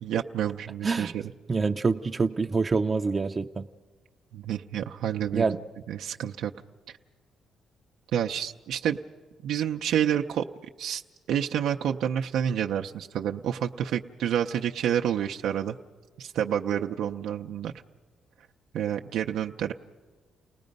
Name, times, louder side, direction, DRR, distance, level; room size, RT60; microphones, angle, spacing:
voice 1, 0.0-1.3 4.3-5.6 5.9-6.5 8.1-9.0 9.4-10.4 10.8-11.0 11.3-15.8 16.2-17.7 18.7-19.7, right 9 dB, 80° right, 0.6 m, -28 dB
voice 2, 1.5-3.7 5.3-5.6, right 4 dB, 30° right, 0.6 m, -26 dB
30.0 x 19.0 x 5.3 m
cardioid pair, 90°, 0 cm